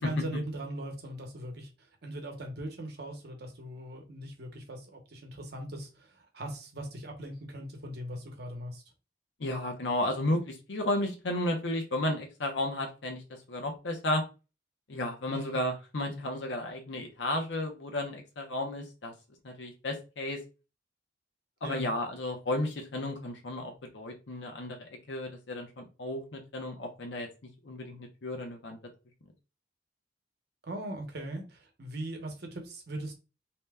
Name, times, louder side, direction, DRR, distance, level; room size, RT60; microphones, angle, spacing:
voice 1, 0.0-1.7 2.0-8.8 15.3-15.6 21.6-21.9 30.7-33.1, right 1 dB, 60° right, 0.9 m, -40 dB
voice 2, 9.4-14.2 14.9-19.1 19.4-20.4 21.6-27.3 27.6-28.8, left 1 dB, 80° left, 0.7 m, -33 dB
2.8 x 2.2 x 3.3 m
head